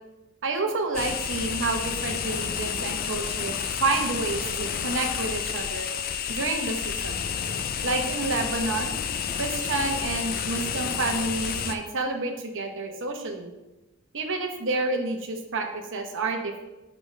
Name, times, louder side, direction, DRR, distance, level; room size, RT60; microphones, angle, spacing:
voice 1, 0.4-5.9 6.3-7.3 7.8-9.0 9.4-13.5 14.1-16.6, right 3 dB, 60° right, 4 dB, 1.0 m, -29 dB
sound 1, 0.9-11.7, left 7 dB, 45° left, 0.4 m, -30 dB
8.4 x 5.3 x 3.3 m, 1.0 s
head